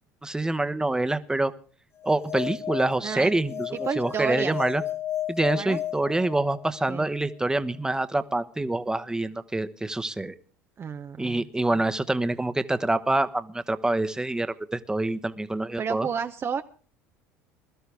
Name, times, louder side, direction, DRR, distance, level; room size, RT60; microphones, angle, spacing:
voice 1, 0.2-1.5 2.0-4.8 5.3-10.3 11.2-16.1, right 2 dB, 10° right, 12 dB, 1.0 m, -26 dB
sound 1, 2.0-6.8, left 11 dB, 40° left, 2.4 m, -34 dB
voice 2, 3.0-4.6 5.5-5.8 6.9-7.1 10.8-11.5 11.7-11.8 15.8-16.6, right 7 dB, 35° right, 8 dB, 0.7 m, -31 dB
21.0 x 12.5 x 3.5 m, 0.39 s
hypercardioid pair, 80°, 8 cm